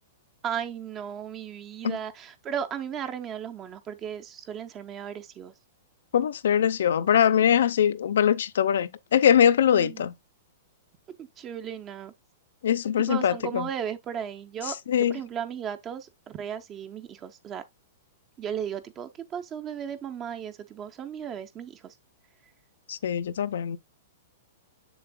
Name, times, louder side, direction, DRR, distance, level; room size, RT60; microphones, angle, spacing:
voice 1, 0.4-5.5 9.7-10.1 11.2-12.1 13.0-17.6 18.4-21.9, right 8 dB, 20° right, 0.5 m, -35 dB
voice 2, 6.1-10.1 12.6-13.7 14.9-15.2 22.9-23.8, left 9 dB, 75° left, 0.6 m, -22 dB
7.0 x 6.8 x 2.2 m
hypercardioid pair, 165°, 0 cm